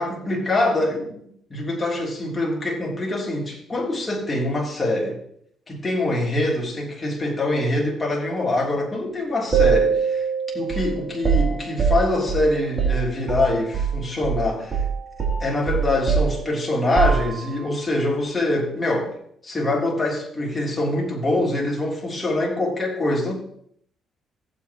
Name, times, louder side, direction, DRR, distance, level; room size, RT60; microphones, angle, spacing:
voice 1, 0.0-5.2 5.7-10.3 10.5-14.9 15.4-19.1 19.4-23.3, left 2 dB, 25° left, -2 dB, 3.4 m, -24 dB
sound 1, 9.5-14.0 14.2-14.4 14.7-17.7, right 6 dB, 45° right, 3.2 m, -23 dB
17.0 x 8.1 x 3.1 m, 0.66 s
cardioid pair, 90°, 0 cm